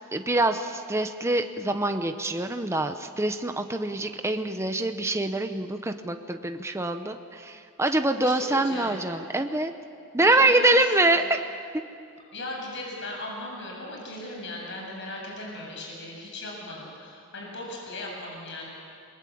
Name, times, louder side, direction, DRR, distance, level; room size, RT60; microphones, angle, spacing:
voice 1, 0.1-9.7 10.1-11.2 11.7-11.8, right 2 dB, 15° right, 6 dB, 0.9 m, -25 dB
voice 2, 8.2-9.0 10.2-10.8 11.1-11.2 12.3-18.7, left 2 dB, 60° left, -1 dB, 7.8 m, -37 dB
29.0 x 22.5 x 8.6 m, 2.4 s
head